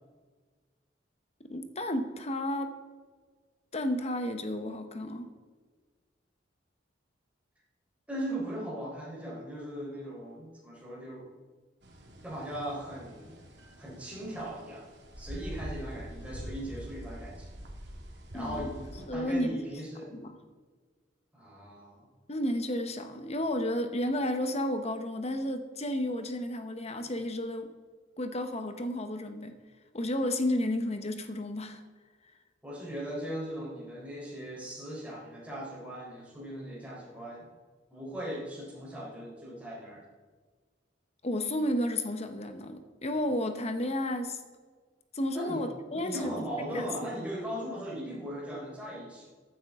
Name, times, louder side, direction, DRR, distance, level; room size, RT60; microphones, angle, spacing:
voice 1, 1.5-2.7 3.7-5.3 18.3-18.7 19.1-19.6 20.1-20.4 22.3-27.7 28.2-29.5 29.9-31.8 41.2-44.4 45.1-46.3 46.7-46.9, left 1 dB, 35° left, 7 dB, 1.0 m, -32 dB
voice 2, 8.1-11.3 12.2-13.3 13.8-14.9 15.2-17.5 18.3-18.8 19.1-20.1 21.3-22.1 32.6-37.5 37.9-40.1 45.3-45.6 45.9-49.3, right 1 dB, 5° right, -6 dB, 3.9 m, -38 dB
sound 1, 11.8-19.1, equal, 65° right, 2.3 m, -44 dB
15.0 x 9.5 x 3.7 m, 1.5 s
head